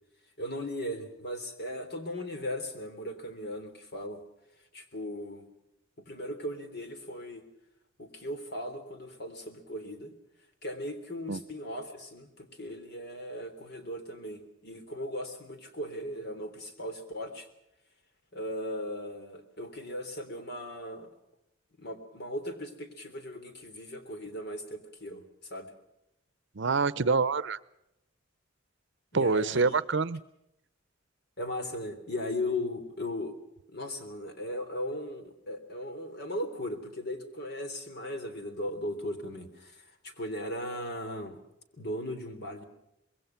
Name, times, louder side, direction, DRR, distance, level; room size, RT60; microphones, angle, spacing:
voice 1, 0.4-4.2 4.7-5.5 6.0-7.4 8.0-10.1 10.6-17.5 18.3-21.1 21.8-25.7 29.1-29.7 31.4-33.3 33.7-41.4 41.7-42.6, left 1 dB, 55° left, 7 dB, 3.4 m, -37 dB
voice 2, 26.6-27.6 29.1-30.2, right 4 dB, 65° right, 18 dB, 0.7 m, -26 dB
25.5 x 21.5 x 5.9 m, 0.83 s
head